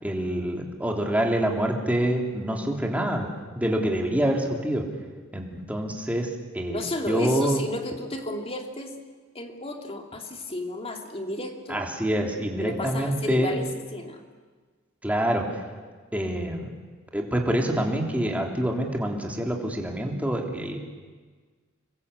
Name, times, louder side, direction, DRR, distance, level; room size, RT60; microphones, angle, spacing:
voice 1, 0.0-3.3 3.5-4.8 5.3-6.3 6.5-7.6 11.7-13.5 15.0-15.6 16.1-16.7 17.1-20.8, right 1 dB, 5° right, 1 dB, 3.2 m, -26 dB
voice 2, 6.7-9.0 9.3-11.8 12.6-13.7 13.9-14.2, left 1 dB, 30° left, 3 dB, 2.6 m, -32 dB
26.5 x 22.0 x 8.3 m, 1.4 s
head